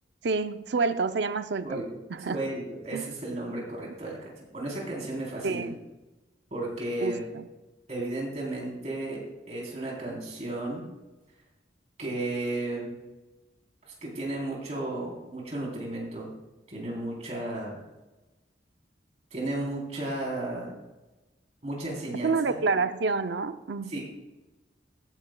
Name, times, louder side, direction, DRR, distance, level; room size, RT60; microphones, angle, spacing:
voice 1, 0.2-1.8 2.1-2.4 2.9-3.0 5.4-5.8 7.0-7.4 22.2-24.0, right 4 dB, 70° right, 10 dB, 0.5 m, -28 dB
voice 2, 2.3-5.7 6.5-7.2 7.9-10.8 12.0-12.9 13.9-16.3 16.7-17.8 19.3-20.7 21.6-22.6 23.9-24.0, right 1 dB, 40° right, -3 dB, 3.6 m, -34 dB
15.0 x 9.8 x 2.3 m, 1.1 s
head